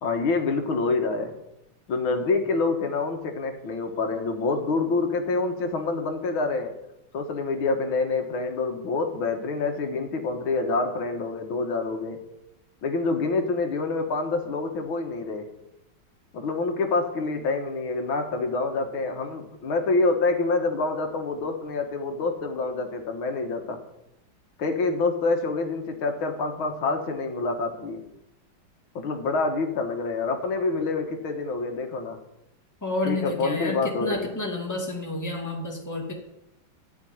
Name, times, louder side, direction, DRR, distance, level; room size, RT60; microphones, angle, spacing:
voice 1, 0.0-1.3 1.9-6.7 7.1-12.2 12.8-15.5 16.3-23.8 24.6-28.0 29.0-32.2 33.1-34.3, left 3 dB, 90° left, 4 dB, 2.3 m, -27 dB
voice 2, 32.8-36.1, left 2 dB, 10° left, 0 dB, 2.1 m, -30 dB
15.0 x 5.3 x 9.3 m, 0.86 s
omnidirectional pair, 2.2 m